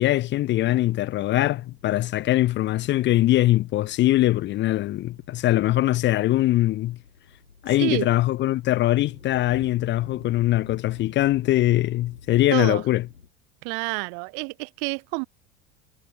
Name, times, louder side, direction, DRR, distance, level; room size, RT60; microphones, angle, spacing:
voice 1, 0.0-7.0 7.6-13.1, left 15 dB, 30° left, 0.6 m, -22 dB
sound 1, 3.5-13.3, left 5 dB, 85° left, 5.7 m, -49 dB
voice 2, 7.8-8.1 12.5-12.8 13.6-15.2, right 40 dB or more, 50° right, 0.8 m, -28 dB
figure-of-eight pair, 75°, 37 cm